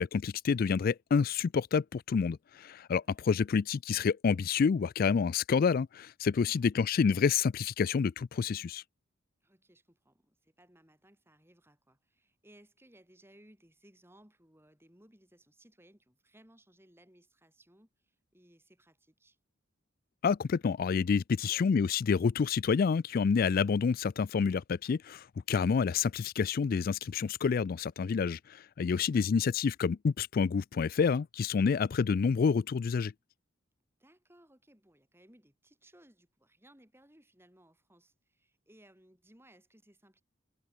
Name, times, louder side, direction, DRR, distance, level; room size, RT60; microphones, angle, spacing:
voice 1, 0.0-8.8 20.2-33.1, left 5 dB, 45° left, 0.3 m, -28 dB
voice 2, 2.9-3.4 6.4-6.7 9.4-19.4 21.4-21.6 28.9-29.4 34.0-40.2, right 1 dB, 10° right, 6.6 m, -62 dB
head